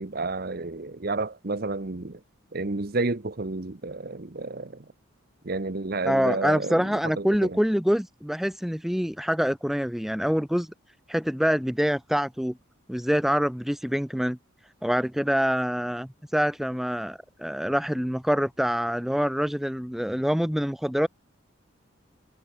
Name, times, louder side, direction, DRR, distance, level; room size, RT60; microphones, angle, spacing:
voice 1, 0.0-2.2 2.5-4.8 5.4-7.6, right 3 dB, 45° right, 0.9 m, -31 dB
voice 2, 6.1-10.7 11.1-12.6 12.9-14.4 14.8-21.1, equal, ahead, 0.5 m, -25 dB
head